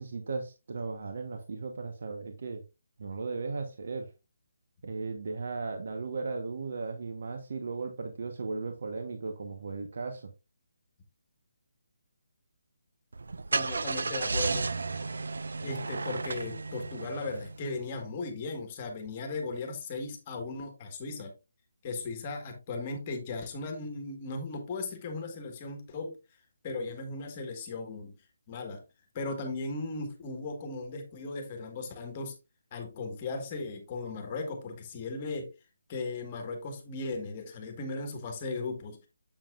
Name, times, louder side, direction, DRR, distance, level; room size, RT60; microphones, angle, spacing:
voice 1, 0.0-2.6 3.0-4.1 4.8-10.3, right 4 dB, 55° right, 5 dB, 1.1 m, -36 dB
Car / Engine starting, 13.1-17.8, right 3 dB, 75° right, 0.4 m, -33 dB
voice 2, 13.5-14.7 15.6-21.3 21.8-26.1 26.6-28.2 28.5-28.8 29.1-32.3 32.7-35.5 35.9-39.1, left 3 dB, 25° left, 4 dB, 1.4 m, -37 dB
7.4 x 7.2 x 2.4 m, 0.26 s
hypercardioid pair, 170°, 0 cm